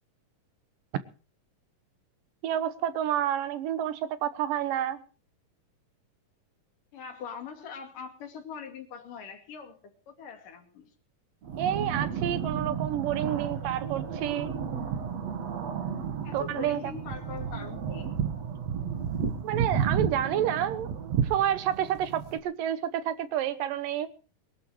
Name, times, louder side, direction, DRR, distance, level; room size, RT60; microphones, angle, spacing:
voice 1, 2.4-5.0 11.6-14.5 16.3-16.8 19.4-24.1, right 10 dB, 80° right, 13 dB, 2.7 m, -29 dB
voice 2, 6.9-9.8 10.1-10.9 16.2-18.1, left 6 dB, 70° left, 4 dB, 4.1 m, -42 dB
sound 1, 11.4-22.4, right 7 dB, 55° right, 2.6 m, -32 dB
22.0 x 12.0 x 4.8 m, 0.38 s
omnidirectional pair, 3.9 m